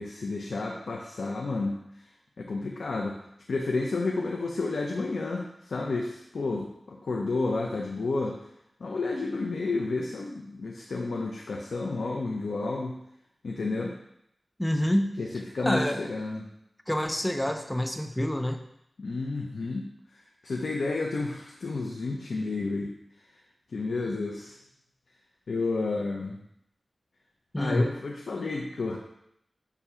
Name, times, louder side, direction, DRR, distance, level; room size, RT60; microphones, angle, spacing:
voice 1, 0.0-1.8 2.4-3.2 3.5-8.4 8.8-12.9 13.4-13.9 15.2-15.3 15.5-16.5 19.0-19.8 20.4-22.9 23.7-24.5 25.5-26.4 27.6-29.0, left 3 dB, 80° left, -1 dB, 0.7 m, -31 dB
voice 2, 14.6-15.2 15.6-16.1 16.9-18.6 27.5-27.9, left 1 dB, 15° left, 6 dB, 0.5 m, -27 dB
7.0 x 2.8 x 5.6 m, 0.78 s
wide cardioid pair, 60°, 0 cm